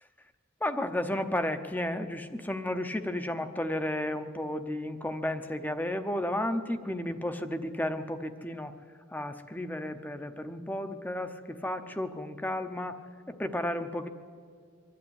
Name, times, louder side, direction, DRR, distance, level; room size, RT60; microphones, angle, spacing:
voice 1, 0.6-8.8 9.1-13.0 13.4-14.1, left 1 dB, 10° left, 8 dB, 0.8 m, -33 dB
23.5 x 12.0 x 9.9 m, 2.2 s
head